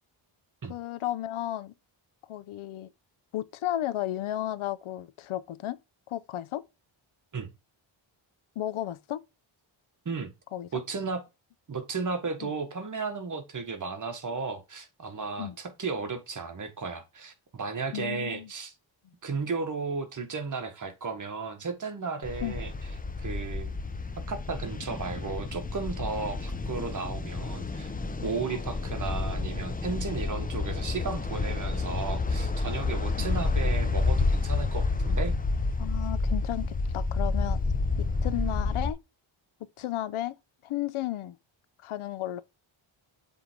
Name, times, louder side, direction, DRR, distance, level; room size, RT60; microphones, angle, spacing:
voice 1, 0.7-1.7 2.3-2.9 3.3-5.8 6.1-6.6 8.6-9.2 10.5-10.7 12.4-12.5 15.4-15.6 17.9-18.5 22.4-22.6 28.5-28.6 33.2-33.3 35.8-37.6 38.0-39.0 39.8-40.3 40.6-41.4 41.8-42.4, left 13 dB, 75° left, 0.7 m, -33 dB
voice 2, 10.7-11.2 11.7-18.7 19.2-22.7 23.2-23.7 24.2-27.9 28.2-35.4, right 4 dB, 35° right, 1.5 m, -34 dB
sound 1, 22.2-38.9, left 3 dB, 15° left, 0.7 m, -29 dB
7.3 x 3.5 x 4.5 m
cardioid pair, 115°, 50 cm